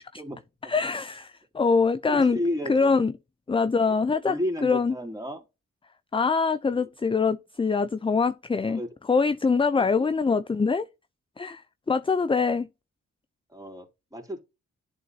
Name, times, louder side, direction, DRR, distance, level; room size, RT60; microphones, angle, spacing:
voice 1, 0.2-0.7 1.9-3.0 3.8-3.9 4.2-5.4 6.7-6.8 8.7-8.9 9.8-10.1 13.5-14.4, left 1 dB, 10° right, 3.3 m, -33 dB
voice 2, 0.7-2.4 2.7-3.1 3.5-4.4 4.6-4.9 6.1-8.8 9.1-10.9 11.4-11.6 11.9-12.7, left 4 dB, 20° left, 0.5 m, -24 dB
10.5 x 3.9 x 2.8 m
cardioid pair, 60°, 29 cm